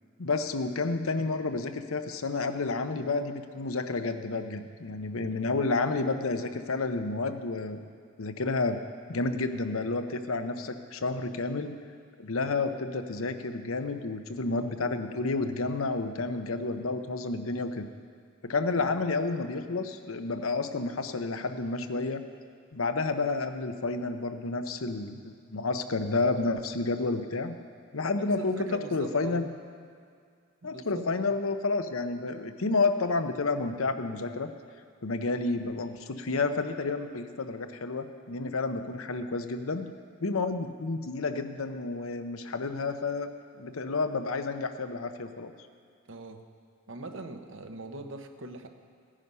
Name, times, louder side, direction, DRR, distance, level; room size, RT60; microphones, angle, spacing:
voice 1, 0.2-7.9 8.2-8.8 9.1-11.7 12.2-17.9 18.4-22.2 22.7-27.5 27.9-29.5 30.6-34.5 35.0-39.9 40.2-43.3 43.6-45.5, left 3 dB, 85° left, 8 dB, 0.8 m, -30 dB
voice 2, 28.2-29.5 30.6-31.0 46.1-46.5 46.9-48.7, right 2 dB, 65° right, 6 dB, 1.0 m, -41 dB
16.5 x 10.0 x 5.5 m, 2.2 s
head